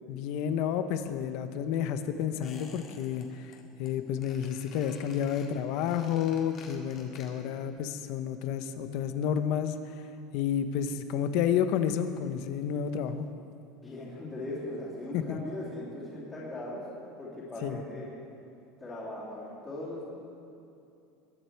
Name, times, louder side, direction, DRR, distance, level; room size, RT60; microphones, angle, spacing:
voice 1, 0.1-3.5 3.8-9.9 10.3-13.3 15.1-15.4 17.6-17.8, left 8 dB, 50° left, 10 dB, 0.8 m, -30 dB
Squeak, 2.4-3.2 3.5-3.9 4.2-7.6 7.9-8.0, left 4 dB, 30° left, 1.8 m, -52 dB
voice 2, 13.8-18.1 18.8-20.1, left 1 dB, 10° left, -9 dB, 2.9 m, -39 dB
21.5 x 10.0 x 4.6 m, 2.7 s
cardioid pair, 175°, 0 cm